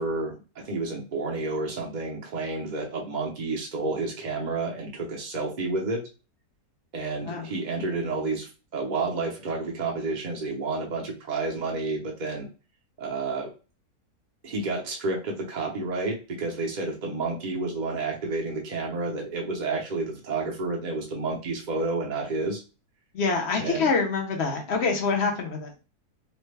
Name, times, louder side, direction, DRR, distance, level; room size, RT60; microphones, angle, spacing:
voice 1, 0.0-6.1 6.9-12.5 13.0-13.5 14.4-22.6 23.6-23.9, right 3 dB, 50° right, -1 dB, 0.5 m, -30 dB
voice 2, 23.1-25.7, left 4 dB, 55° left, 2 dB, 0.8 m, -26 dB
3.2 x 2.0 x 3.3 m, 0.33 s
omnidirectional pair, 1.7 m